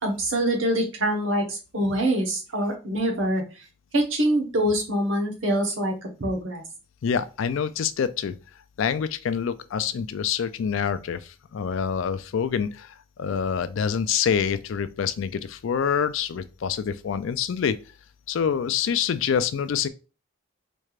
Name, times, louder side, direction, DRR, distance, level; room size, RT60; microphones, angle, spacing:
voice 1, 0.0-3.4 3.9-6.6, right 1 dB, 75° right, 1.1 m, -25 dB
voice 2, 7.0-8.4 8.8-17.8 18.3-19.9, left 7 dB, 75° left, 0.4 m, -26 dB
4.3 x 3.3 x 2.4 m
head